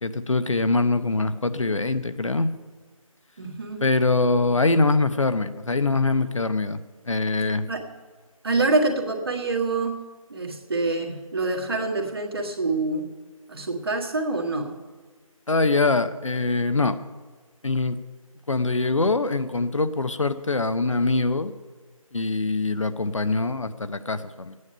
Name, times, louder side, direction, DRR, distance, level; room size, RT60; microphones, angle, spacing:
voice 1, 0.0-2.5 3.8-7.6 15.5-17.0 17.6-18.0 18.5-21.5 22.1-24.5, left 3 dB, 60° left, 11 dB, 0.9 m, -23 dB
voice 2, 3.4-3.8 7.4-7.9 8.4-10.0 10.3-13.1 13.5-14.8, right 3 dB, 45° right, 2 dB, 1.8 m, -26 dB
15.5 x 9.8 x 5.6 m, 1.4 s
figure-of-eight pair, 160°, 18 cm